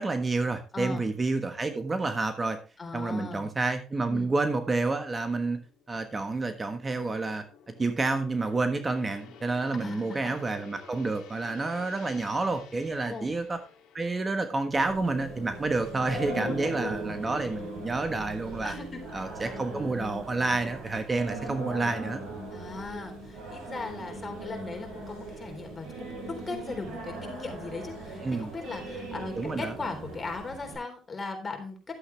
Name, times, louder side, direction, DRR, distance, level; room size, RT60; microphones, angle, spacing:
voice 1, 0.0-2.6 2.9-5.6 5.9-7.4 7.8-13.6 13.9-18.7 19.1-22.2 28.2-28.5 29.4-29.7, right 3 dB, 25° right, 8 dB, 1.3 m, -29 dB
voice 2, 0.7-1.1 2.8-3.5 4.1-4.3 9.8-10.4 13.1-13.3 16.4-17.0 18.6-19.2 22.5-31.8, left 3 dB, 30° left, 4 dB, 3.7 m, -38 dB
Gong, 5.2-17.3 17.6-17.9, left 7 dB, 80° left, 1.9 m, -53 dB
Singing, 14.7-30.8, right 2 dB, 70° right, 6.7 m, -39 dB
11.5 x 8.2 x 3.3 m, 0.33 s
supercardioid pair, 70°, 0 cm